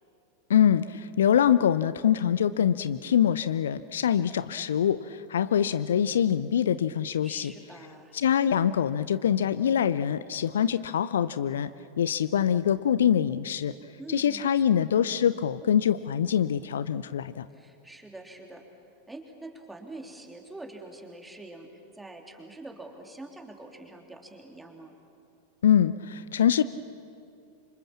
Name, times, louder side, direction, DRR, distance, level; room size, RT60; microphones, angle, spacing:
voice 1, 0.5-7.5 8.1-11.7 12.0-13.7 14.1-17.5 25.6-26.6, left 9 dB, 65° left, 15 dB, 0.6 m, -24 dB
voice 2, 7.2-8.2 14.0-14.8 17.5-18.6 19.1-21.7 21.9-24.9, right 2 dB, 5° right, 2 dB, 3.3 m, -45 dB
28.0 x 26.0 x 7.4 m, 2.5 s
figure-of-eight pair, 90°, 0 cm